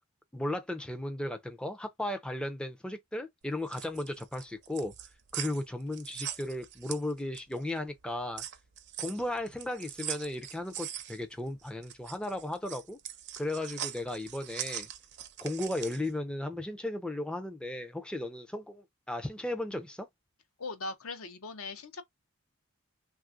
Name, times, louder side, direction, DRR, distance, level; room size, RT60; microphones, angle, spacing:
voice 1, 0.3-4.9 5.3-8.4 9.0-13.0 13.4-14.9 15.4-20.1, left 1 dB, 5° left, 0.3 m, -35 dB
sound 1, 3.5-7.6 8.0-16.1, right 11 dB, 55° right, 0.5 m, -41 dB
voice 2, 20.6-22.0, left 3 dB, 80° left, 0.7 m, -39 dB
3.2 x 2.3 x 2.5 m
head